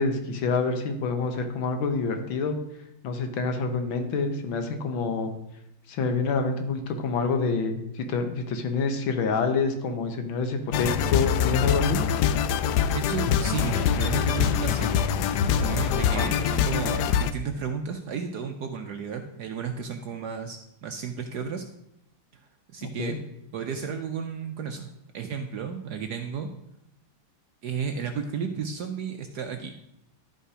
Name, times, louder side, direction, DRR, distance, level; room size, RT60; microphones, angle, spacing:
voice 1, 0.0-2.6 3.0-5.3 5.9-12.0 16.1-16.3 22.8-23.2, left 4 dB, 70° left, 6 dB, 1.7 m, -27 dB
sound 1, 10.7-17.3, left 8 dB, 90° left, 0.9 m, -24 dB
voice 2, 12.9-14.9 15.4-21.6 22.3-23.2 23.5-26.5 27.6-29.8, right 6 dB, 65° right, 5 dB, 1.0 m, -33 dB
12.0 x 5.4 x 4.9 m, 0.82 s
omnidirectional pair, 2.3 m